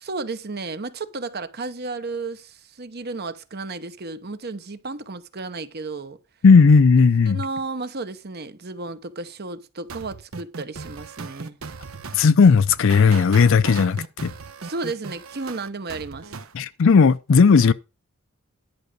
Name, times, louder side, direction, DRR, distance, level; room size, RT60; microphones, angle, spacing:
voice 1, 0.0-6.2 7.3-11.6 14.6-16.4, right 3 dB, 50° right, 1.0 m, -33 dB
voice 2, 6.4-7.4 12.1-14.3 16.5-17.7, left 5 dB, 65° left, 0.5 m, -15 dB
sound 1, 9.9-16.5, right 4 dB, 75° right, 1.0 m, -37 dB
11.0 x 5.0 x 6.6 m
head